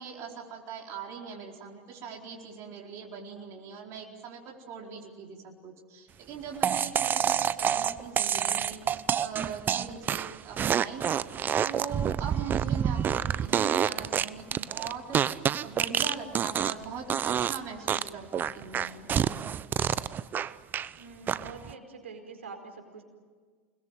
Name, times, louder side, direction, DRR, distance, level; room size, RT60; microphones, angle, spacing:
voice 1, 0.0-11.0 11.6-15.2 15.6-19.4, right 6 dB, 45° right, 0 dB, 4.5 m, -41 dB
sound 1, 6.6-16.8 17.1-17.6 17.9-20.9 21.3-21.7, right 9 dB, 30° right, 0.8 m, -28 dB
voice 2, 21.0-23.0, right 4 dB, 80° right, 4 dB, 4.8 m, -45 dB
28.5 x 21.0 x 9.2 m, 1.5 s
hypercardioid pair, 95°, 7 cm